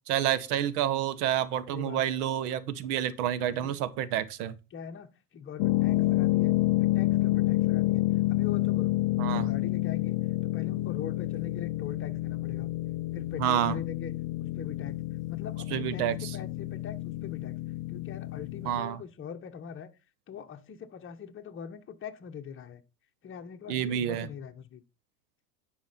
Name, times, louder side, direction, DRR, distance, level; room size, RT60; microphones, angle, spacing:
voice 1, 0.1-4.5 9.2-9.5 13.4-13.7 15.7-16.3 18.6-19.0 23.7-24.3, right 11 dB, 70° right, 1.2 m, -29 dB
voice 2, 1.7-2.1 3.5-3.8 4.7-6.5 6.8-8.0 8.3-10.2 10.4-12.7 13.1-14.1 14.4-14.9 15.3-17.6 17.9-19.9 20.3-22.8 23.2-24.8, left 7 dB, 25° left, 1.1 m, -42 dB
sound 1, 5.6-18.8, left 18 dB, 45° left, 0.5 m, -29 dB
10.5 x 4.8 x 4.3 m
hypercardioid pair, 100°, 47 cm